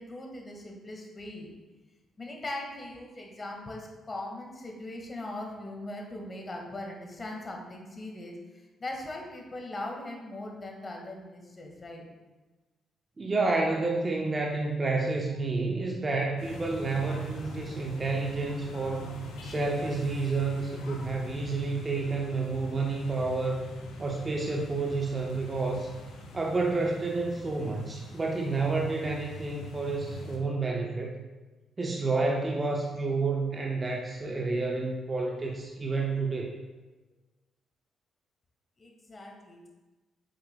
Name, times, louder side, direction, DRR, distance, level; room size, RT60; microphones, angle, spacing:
voice 1, 0.0-1.5 2.2-12.1 38.8-39.7, left 1 dB, 30° left, 1 dB, 1.6 m, -40 dB
voice 2, 13.2-23.7 24.0-25.9 26.3-31.2 31.8-36.5, right 3 dB, 30° right, 0 dB, 0.9 m, -30 dB
sound 1, 16.4-30.4, left 1 dB, 70° left, 0.9 m, -42 dB
8.0 x 6.5 x 2.2 m, 1.2 s
figure-of-eight pair, 40°, 0 cm